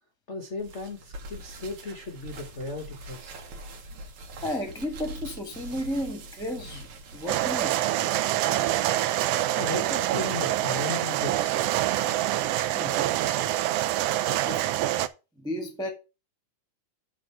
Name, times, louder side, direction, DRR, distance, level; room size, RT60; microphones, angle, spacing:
voice 1, 0.3-3.4 9.6-11.8, left 2 dB, 80° left, 0.6 m, -36 dB
sound 1, 0.6-7.7, right 1 dB, 70° right, 2.9 m, -43 dB
voice 2, 4.4-7.8 12.7-13.0 14.5-14.6 15.4-15.9, equal, ahead, 0.9 m, -33 dB
sound 2, 7.3-15.1, right 14 dB, 90° right, 1.3 m, -26 dB
10.0 x 3.8 x 5.8 m
omnidirectional pair, 3.4 m